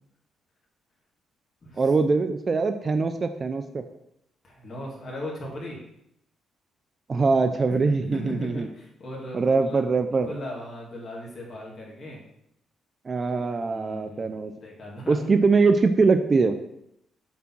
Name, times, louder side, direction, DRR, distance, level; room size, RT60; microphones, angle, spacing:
voice 1, 1.8-3.8 7.1-8.7 9.3-10.3 13.0-14.5 15.1-16.6, right 4 dB, 35° right, 8 dB, 0.5 m, -22 dB
voice 2, 4.4-5.8 7.7-9.8 10.1-12.2 13.6-15.2, left 1 dB, 45° left, -3 dB, 2.5 m, -38 dB
7.4 x 3.5 x 6.0 m, 0.80 s
cardioid pair, 90°, 0 cm